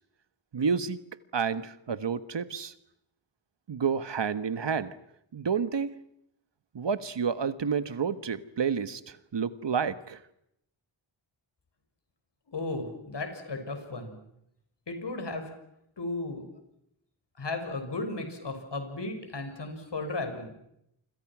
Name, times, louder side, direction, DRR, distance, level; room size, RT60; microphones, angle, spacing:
voice 1, 0.5-1.0 1.3-2.7 3.7-4.9 5.3-5.9 6.7-10.2, right 6 dB, 60° right, 13 dB, 1.5 m, -30 dB
voice 2, 12.5-14.2 14.9-15.5 16.0-16.5 17.4-20.5, left 2 dB, 60° left, 6 dB, 6.6 m, -35 dB
29.0 x 26.0 x 6.2 m, 0.77 s
wide cardioid pair, 100°, 47 cm